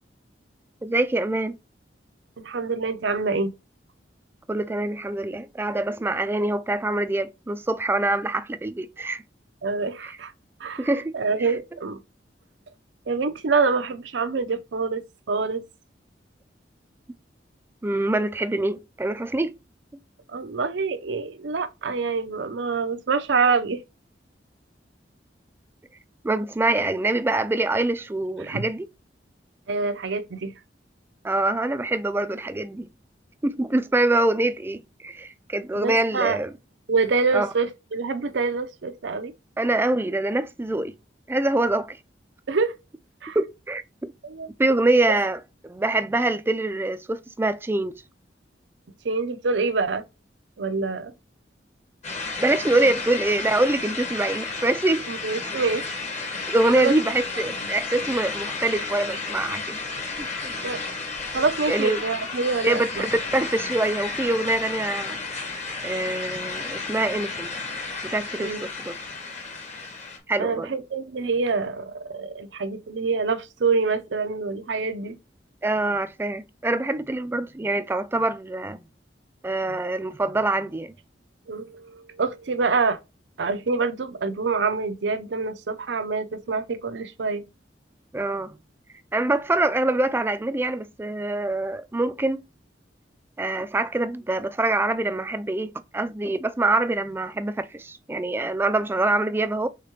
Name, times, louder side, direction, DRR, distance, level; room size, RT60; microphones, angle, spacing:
voice 1, 0.8-1.5 4.5-9.2 10.8-11.1 11.4-11.5 17.8-19.5 26.2-28.9 31.2-32.9 33.4-36.5 37.3-37.5 39.6-40.9 41.3-42.0 43.4-44.1 44.6-48.0 52.4-55.0 56.5-59.8 60.2-60.5 61.7-62.0 62.6-65.2 65.8-67.5 68.1-68.9 70.3-70.7 75.6-78.8 79.4-80.9 88.1-88.6 89.1-92.4 93.4-99.7, right 2 dB, 15° right, 0.3 m, -25 dB
voice 2, 2.4-3.5 9.6-10.3 10.6-10.9 11.1-12.0 13.1-15.0 15.3-15.6 20.3-23.8 28.4-28.7 29.7-30.5 35.7-36.4 36.9-39.3 42.5-42.7 43.2-43.4 44.2-44.5 49.0-50.0 50.6-51.1 55.1-55.9 56.3-56.4 56.8-56.9 60.6-60.8 61.3-63.0 68.4-68.6 70.4-75.2 81.5-83.0 83.4-87.4, right 4 dB, 90° right, 0.6 m, -26 dB
sound 1, 52.0-70.2, left 4 dB, 40° left, 1.1 m, -32 dB
5.0 x 3.6 x 2.9 m
head